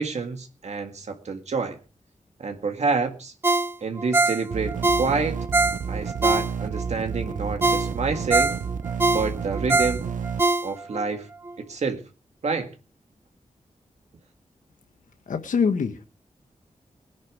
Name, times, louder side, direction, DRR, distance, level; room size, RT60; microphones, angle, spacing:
voice 1, 0.0-1.8 2.4-3.3 3.8-5.4 5.9-8.5 9.1-10.1 10.6-11.3 11.6-12.0 12.4-12.7, right 4 dB, 60° right, 5 dB, 2.0 m, -28 dB
Ringtone, 3.4-6.9 7.3-7.4 7.6-11.1 11.5-11.6, right 3 dB, 20° right, 0.7 m, -23 dB
sound 1, 4.5-10.4, right 6 dB, 85° right, 0.8 m, -31 dB
voice 2, 15.3-16.1, left 6 dB, 80° left, 8 dB, 1.4 m, -24 dB
20.5 x 10.5 x 5.0 m, 0.36 s
wide cardioid pair, 180°, 13 cm